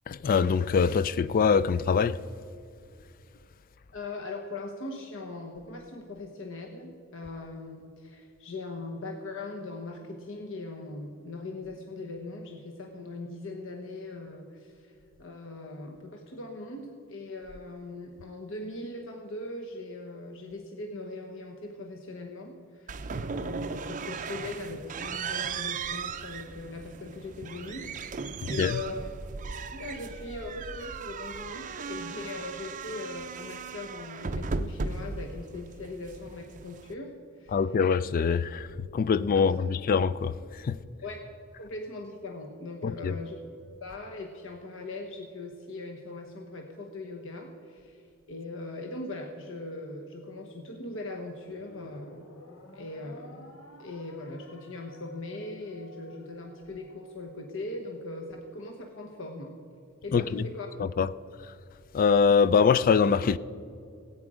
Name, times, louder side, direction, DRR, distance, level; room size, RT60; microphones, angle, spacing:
voice 1, 0.1-2.2 28.6-28.8 37.5-38.7 38.9-40.8 42.8-43.2 60.1-60.5 60.8-61.1 61.9-63.4, left 6 dB, 40° left, 0.3 m, -24 dB
voice 2, 3.9-14.9 15.2-29.1 29.7-37.1 37.4-37.6 39.3-39.4 41.0-41.3 41.5-43.4 43.8-48.0 48.3-52.3 52.7-59.5 60.0-60.7, left 2 dB, 65° left, 1.1 m, -40 dB
sound 1, 22.9-36.9, right 4 dB, 35° right, 0.5 m, -37 dB
sound 2, 51.5-58.0, left 1 dB, 80° left, 1.3 m, -52 dB
17.5 x 9.0 x 4.9 m
head